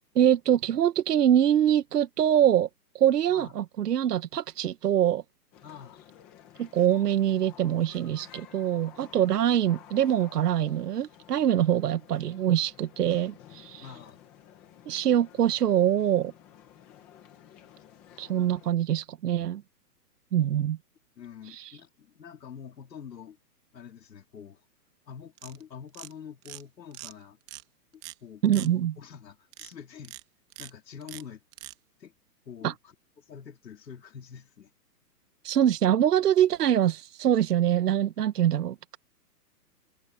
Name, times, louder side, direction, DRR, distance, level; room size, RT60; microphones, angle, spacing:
voice 1, 0.1-2.7 2.9-5.2 6.6-13.9 14.9-16.3 18.2-19.6 20.3-20.8 21.5-21.7 28.4-28.9 32.6-32.7 35.4-39.0, right 10 dB, 70° right, 1.2 m, -24 dB
sound 1, 5.5-18.7, left 10 dB, 5° left, 0.7 m, -53 dB
voice 2, 5.6-6.1 13.8-14.2 21.2-23.4 23.7-24.7 25.0-27.4 27.9-30.2 30.6-31.4 32.0-32.1 32.4-34.7, left 7 dB, 85° left, 3.5 m, -46 dB
sound 2, 25.4-25.6 25.9-26.1 26.4-26.6 26.9-27.1 27.5-27.6 28.0-28.1 28.4-28.7 29.5-29.7 30.0-30.2 30.5-30.7 31.0-31.2 31.5-31.7, right 17 dB, 15° right, 1.3 m, -42 dB
hypercardioid pair, 170°, 49 cm